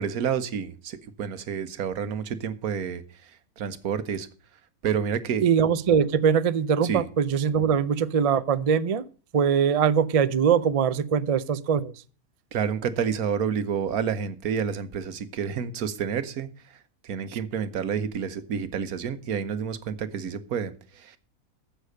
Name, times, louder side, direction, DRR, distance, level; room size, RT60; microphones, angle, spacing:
voice 1, 0.0-3.0 3.6-4.3 4.8-5.4 6.8-7.0 12.5-16.5 17.0-21.2, right 7 dB, 90° right, 1.5 m, -29 dB
voice 2, 5.4-9.0 9.3-11.9, right 7 dB, 55° right, 0.3 m, -22 dB
15.0 x 6.2 x 6.3 m
omnidirectional pair, 1.5 m